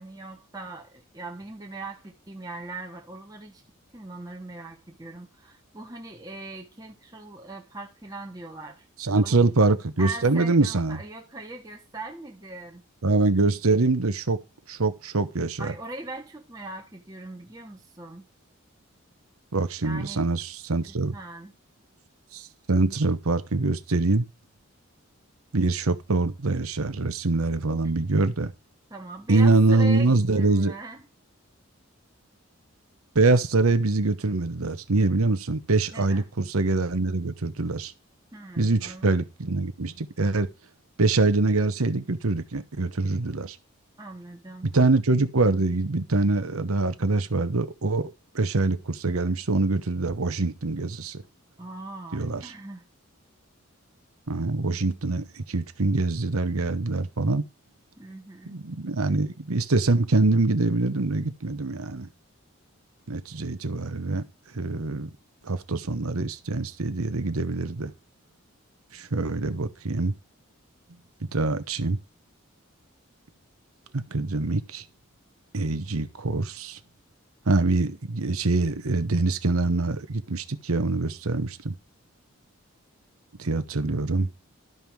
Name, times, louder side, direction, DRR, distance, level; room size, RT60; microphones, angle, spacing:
voice 1, 0.0-3.6 3.9-8.8 9.2-9.4 10.0-12.8 15.6-18.2 19.8-20.2 20.9-21.5 28.9-31.0 35.9-36.2 38.3-39.2 44.0-44.7 51.6-52.9 58.0-58.6, right 2 dB, 15° right, 1.2 m, -40 dB
voice 2, 9.0-11.0 13.0-14.4 14.7-15.7 19.5-21.1 22.3-24.3 25.5-28.5 29.3-30.7 33.1-37.9 38.6-40.5 41.0-43.6 44.6-48.0 48.3-51.2 52.1-52.5 54.3-57.4 58.5-62.1 63.1-64.2 64.5-65.1 65.4-67.9 68.9-70.1 71.3-72.0 73.9-74.8 75.5-76.8 77.5-81.7 83.4-84.3, right 3 dB, 90° right, 1.0 m, -24 dB
12.0 x 5.5 x 4.7 m
head